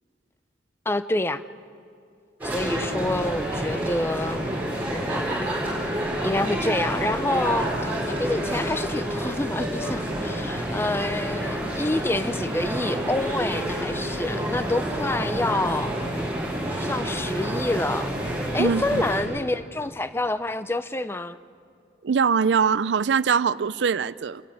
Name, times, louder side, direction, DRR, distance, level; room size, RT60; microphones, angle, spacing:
voice 1, 0.9-1.4 2.4-4.4 4.9-5.6 6.0-16.0 16.8-18.1 18.5-21.4, left 2 dB, 15° left, 0.5 m, -27 dB
sound 1, 2.4-19.2, right 1 dB, 10° right, 6.7 m, -28 dB
voice 2, 18.6-19.0 22.0-24.4, right 6 dB, 85° right, 0.5 m, -22 dB
28.0 x 12.0 x 9.6 m
head